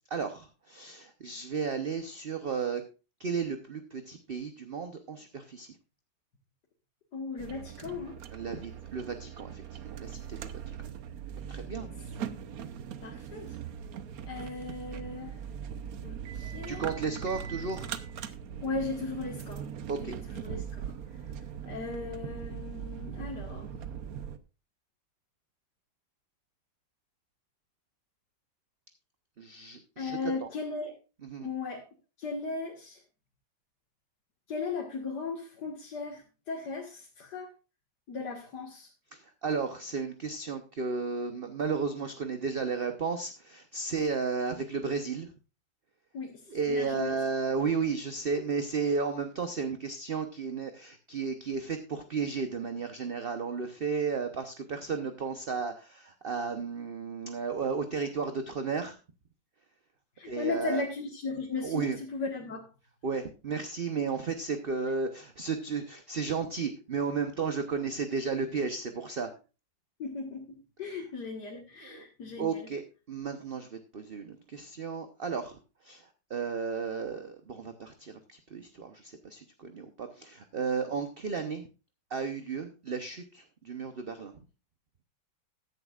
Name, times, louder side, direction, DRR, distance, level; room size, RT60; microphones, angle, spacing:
voice 1, 0.1-2.8 3.2-5.7 8.3-10.7 11.5-11.9 16.4-17.9 19.9-20.2 29.4-30.5 31.2-31.5 39.1-45.3 46.5-59.0 60.3-60.8 61.6-62.0 63.0-69.3 70.8-71.0 71.8-72.1 72.4-81.7 82.1-84.3, right 5 dB, 40° right, 7 dB, 0.9 m, -33 dB
voice 2, 7.1-8.2 11.8-11.9 13.0-13.5 14.3-15.4 16.0-16.8 18.6-19.6 20.0-20.2 20.4-20.9 21.7-23.7 30.0-30.9 31.4-31.9 32.2-33.0 34.5-37.5 38.1-38.9 46.1-47.2 60.2-62.7 70.0-72.7, left 4 dB, 65° left, 0 dB, 2.2 m, -37 dB
sound 1, 7.4-24.4, right 8 dB, 60° right, 1.2 m, -40 dB
15.0 x 10.5 x 2.4 m, 0.32 s
omnidirectional pair, 1.9 m